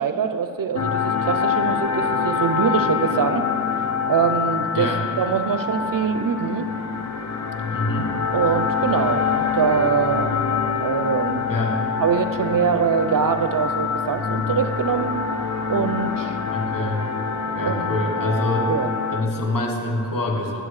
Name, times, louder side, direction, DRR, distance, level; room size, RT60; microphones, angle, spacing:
voice 1, 0.0-3.5 4.1-4.9 5.2-6.7 8.3-10.4 10.8-11.5 12.0-15.1 15.7-16.4 17.6-18.0 18.7-18.9, right 6 dB, 60° right, 9 dB, 0.5 m, -23 dB
sound 1, 0.7-19.2, left 6 dB, 45° left, 0.6 m, -25 dB
voice 2, 4.7-5.0 7.7-8.1 11.5-11.8 16.5-17.0 17.5-18.7 19.1-20.6, left 1 dB, 60° left, 0 dB, 1.3 m, -25 dB
11.0 x 7.7 x 3.2 m, 2.8 s
wide cardioid pair, 60°, 37 cm